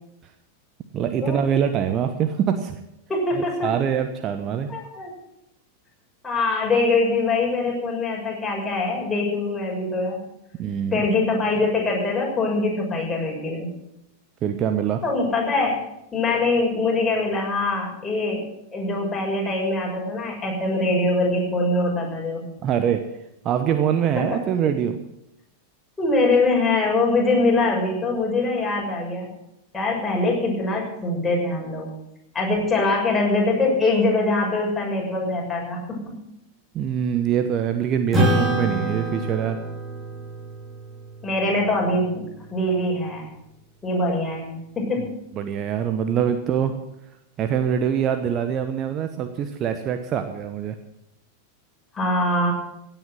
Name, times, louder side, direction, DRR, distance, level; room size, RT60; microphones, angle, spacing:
voice 1, 0.9-2.8 3.4-4.7 10.6-11.1 14.4-15.0 22.6-23.1 23.4-25.0 36.7-39.6 45.4-46.7 47.4-50.7, right 8 dB, 30° right, 8 dB, 1.1 m, -24 dB
voice 2, 3.1-3.7 4.7-5.1 6.2-10.2 10.9-13.7 15.0-15.7 16.1-18.4 18.7-22.4 24.1-24.4 26.0-29.3 29.7-31.9 32.3-36.0 41.2-42.2 42.5-43.3 43.8-45.0 51.9-52.5, left 2 dB, 15° left, -3 dB, 6.5 m, -23 dB
Acoustic guitar / Strum, 38.1-42.9, right 1 dB, 15° right, 5.2 m, -27 dB
16.5 x 9.2 x 7.7 m, 0.82 s
figure-of-eight pair, 90°, 0 cm